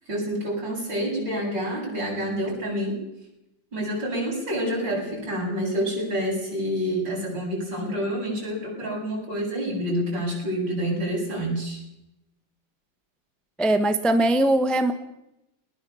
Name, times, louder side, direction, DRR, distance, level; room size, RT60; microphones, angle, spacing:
voice 1, 0.1-3.0 3.7-11.8, equal, 75° right, -2 dB, 8.3 m, -28 dB
voice 2, 13.6-14.9, right 1 dB, ahead, 8 dB, 0.9 m, -20 dB
20.5 x 19.5 x 7.1 m, 0.86 s
omnidirectional pair, 2.0 m